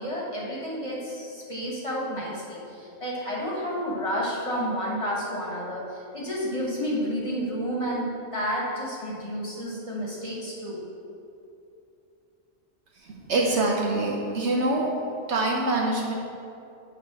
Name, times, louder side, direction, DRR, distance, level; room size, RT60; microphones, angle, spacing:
voice 1, 0.0-10.8, equal, 25° left, -6 dB, 1.5 m, -30 dB
voice 2, 13.1-14.9 15.3-16.1, right 2 dB, 60° right, -1 dB, 1.0 m, -25 dB
9.1 x 3.2 x 6.0 m, 2.6 s
omnidirectional pair, 1.4 m